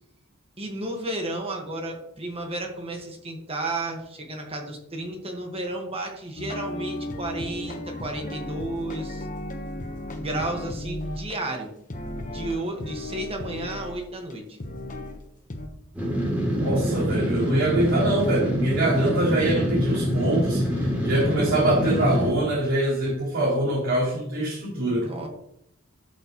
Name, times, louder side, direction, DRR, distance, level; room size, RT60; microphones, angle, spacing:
voice 1, 0.6-9.3 10.2-11.7 12.2-14.6 25.0-25.3, right 1 dB, 30° right, 2 dB, 1.5 m, -32 dB
sound 1, 6.4-11.4 11.9-14.0 14.3-14.4 14.6-15.2 15.5-15.7, left 1 dB, 40° left, 1.1 m, -35 dB
sound 2, 15.9-22.3, equal, 5° right, 3.3 m, -25 dB
voice 2, 16.5-25.1, right 1 dB, 65° right, -8 dB, 3.4 m, -24 dB
12.0 x 6.6 x 3.1 m, 0.73 s
head